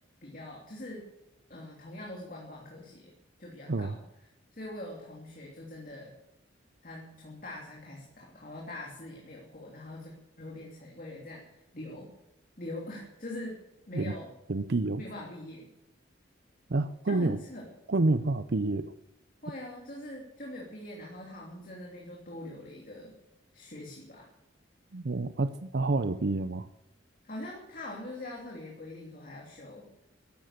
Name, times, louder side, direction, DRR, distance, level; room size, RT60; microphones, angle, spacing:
voice 1, 0.2-1.1 1.5-3.1 3.4-4.0 4.5-6.1 6.8-12.1 12.6-13.6 13.9-14.3 15.0-15.7 17.0-17.7 19.4-23.2 23.5-24.3 27.2-29.9, left 1 dB, 45° left, -2 dB, 3.0 m, -43 dB
voice 2, 14.5-15.0 16.7-17.4 17.9-18.9 24.9-26.7, right 2 dB, 60° right, 11 dB, 0.6 m, -28 dB
14.5 x 12.5 x 6.7 m, 0.89 s
head